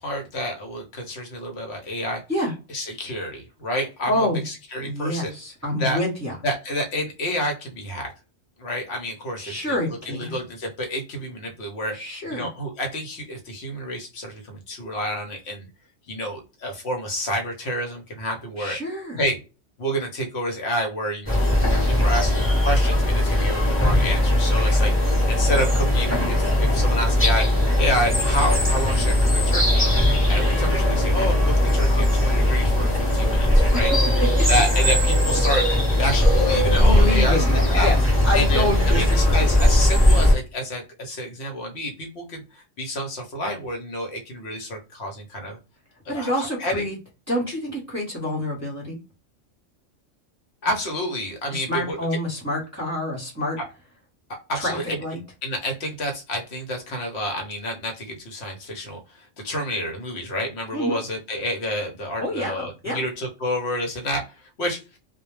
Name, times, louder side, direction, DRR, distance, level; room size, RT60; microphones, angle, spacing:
voice 1, 0.0-2.2 2.7-4.1 4.5-5.3 5.8-6.0 6.4-8.1 8.6-9.8 10.1-12.0 12.3-15.7 16.1-18.8 19.2-19.4 19.8-27.5 27.7-29.9 30.3-33.9 34.5-35.7 36.0-37.4 37.7-37.9 38.3-45.6 46.1-46.8 50.6-52.0 54.5-54.8 55.4-64.2 64.6-64.8, equal, 65° left, 3 dB, 0.9 m, -29 dB
voice 2, 4.1-4.4 4.8-6.3 9.4-10.4 11.9-12.5 18.6-19.2 33.7-33.9 36.8-39.5 46.1-47.0 47.3-49.0 51.5-53.6 54.5-55.2 60.7-61.0 62.2-63.0, left 1 dB, 15° right, -4 dB, 0.8 m, -27 dB
sound 1, 21.3-40.3, left 1 dB, 15° left, 0.7 m, -19 dB
2.1 x 2.1 x 3.0 m, 0.30 s
omnidirectional pair, 1.2 m